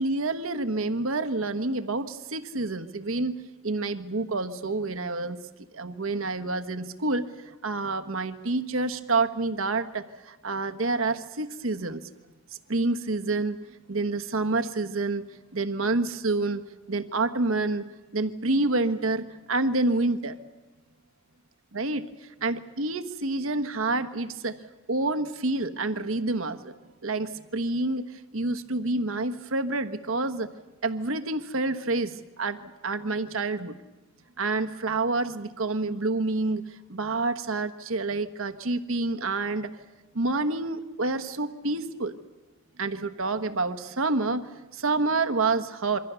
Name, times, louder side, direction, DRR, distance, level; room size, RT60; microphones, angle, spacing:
voice 1, 0.0-3.4 3.6-5.4 5.7-12.0 12.7-13.6 13.9-15.2 15.5-16.6 16.9-17.9 18.1-20.4 21.7-24.6 24.9-26.7 27.0-30.5 30.8-33.8 34.4-39.7 40.1-42.1 42.8-46.0, right 3 dB, 80° right, 10 dB, 1.3 m, -28 dB
27.0 x 24.0 x 6.9 m, 1.2 s
head